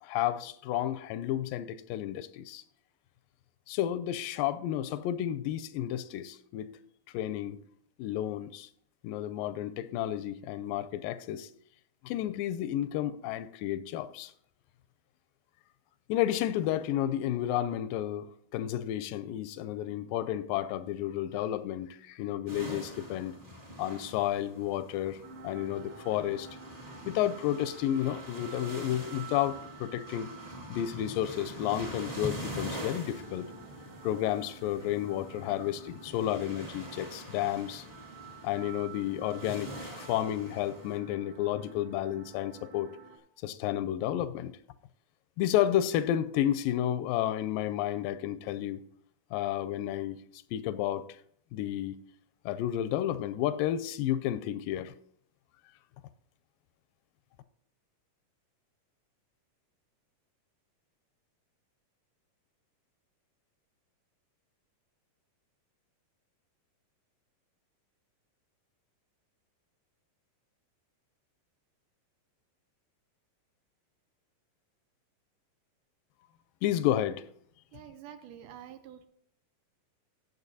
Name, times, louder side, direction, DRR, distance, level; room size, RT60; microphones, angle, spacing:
voice 1, 0.0-2.6 3.7-6.7 7.1-7.6 8.0-8.7 9.0-11.5 12.0-14.3 16.1-23.4 23.8-26.5 27.1-30.3 30.7-33.5 34.0-37.9 38.4-42.9 43.4-44.5 45.4-48.8 49.3-51.1 51.5-52.0 52.5-54.9 76.6-77.2, left 12 dB, 85° left, 2.2 m, -31 dB
sound 1, 22.5-41.0, equal, 20° right, 1.3 m, -44 dB
sound 2, 25.2-43.2, right 6 dB, 50° right, 2.0 m, -51 dB
voice 2, 77.7-79.1, right 10 dB, 80° right, 2.0 m, -48 dB
18.0 x 7.3 x 2.7 m
omnidirectional pair, 3.9 m